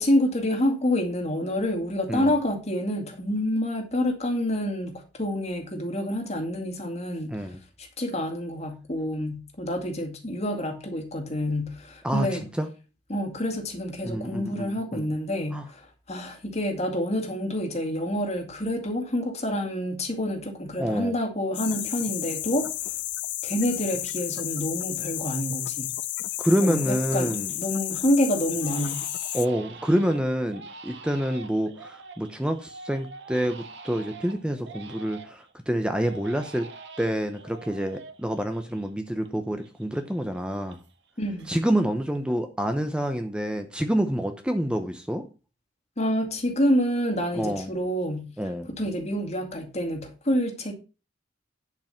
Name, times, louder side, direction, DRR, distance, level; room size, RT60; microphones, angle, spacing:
voice 1, 0.0-7.5 7.8-12.5 13.1-22.7 23.4-25.9 26.6-29.0 41.2-41.5 46.0-48.3 48.7-50.7, left 1 dB, 35° left, 2.2 m, -28 dB
voice 2, 14.0-15.1 15.5-15.7 20.8-21.1 26.4-27.5 29.3-36.7 37.0-40.8 41.5-45.2 47.3-47.7 48.4-48.7, equal, 5° right, 0.8 m, -27 dB
sound 1, 21.5-29.5, left 15 dB, 65° left, 0.5 m, -32 dB
Crying sobbing, 25.4-25.5 26.0-26.4 26.8-27.7 28.0-28.1 28.6-35.5 36.0-39.3 39.6-41.1 41.4-41.9, right 3 dB, 70° right, 1.6 m, -45 dB
10.5 x 5.4 x 5.8 m
head